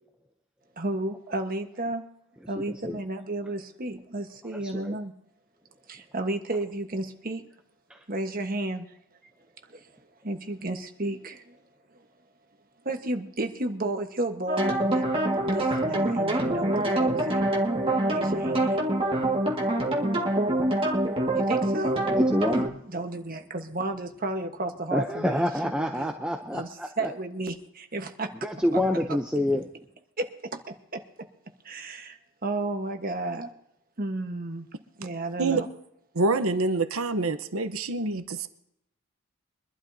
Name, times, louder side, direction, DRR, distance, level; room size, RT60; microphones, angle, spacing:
voice 1, 0.8-2.0 2.5-5.1 5.9-7.4 8.1-8.9 9.7-11.6 12.8-15.0 15.4-17.5 18.0-18.8 21.3-22.0 22.8-25.4 25.6-26.1 26.5-28.3 28.7-28.8 30.2-30.6 30.9-31.0 31.6-33.5 34.0-34.7 35.0-35.7, right 2 dB, 40° right, 5 dB, 1.3 m, -32 dB
voice 2, 2.7-3.0 4.7-5.0 7.9-8.0 22.1-22.7 24.9-27.1 28.4-29.7, left 1 dB, 5° right, 3 dB, 0.6 m, -27 dB
sound 1, 14.5-22.7, right 1 dB, 25° right, 1.9 m, -25 dB
voice 3, 36.1-38.5, right 3 dB, 75° right, 9 dB, 0.9 m, -26 dB
24.0 x 12.0 x 2.8 m, 0.78 s
head